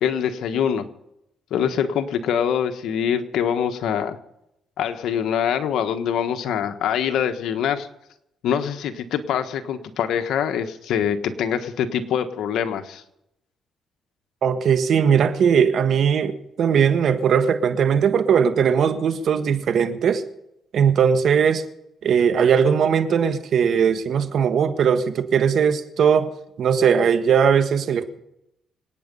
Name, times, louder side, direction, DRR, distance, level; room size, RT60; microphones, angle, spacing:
voice 1, 0.0-0.8 1.5-4.2 4.8-7.9 8.4-13.0, left 8 dB, 80° left, 7 dB, 1.4 m, -24 dB
voice 2, 14.4-20.2 20.7-21.6 22.0-26.3 26.6-28.2, right 7 dB, 65° right, 9 dB, 1.5 m, -19 dB
26.0 x 9.3 x 5.5 m, 0.83 s
cardioid pair, 90°, 0 cm